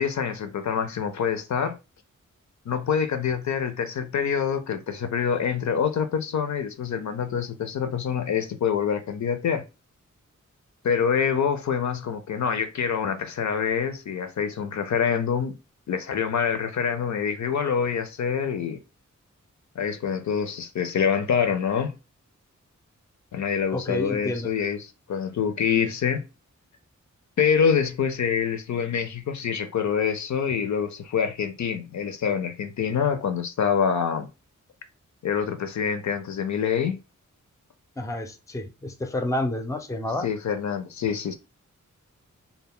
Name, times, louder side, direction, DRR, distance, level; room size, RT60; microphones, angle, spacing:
voice 1, 0.0-1.8 2.7-9.6 10.8-15.6 15.9-18.8 19.8-22.0 23.3-26.3 27.4-34.3 35.2-37.0 40.2-41.3, left 7 dB, 65° left, 0.5 m, -26 dB
voice 2, 23.7-24.5 38.0-40.3, left 1 dB, 10° left, 0.4 m, -29 dB
2.2 x 2.0 x 3.5 m
wide cardioid pair, 70°, 31 cm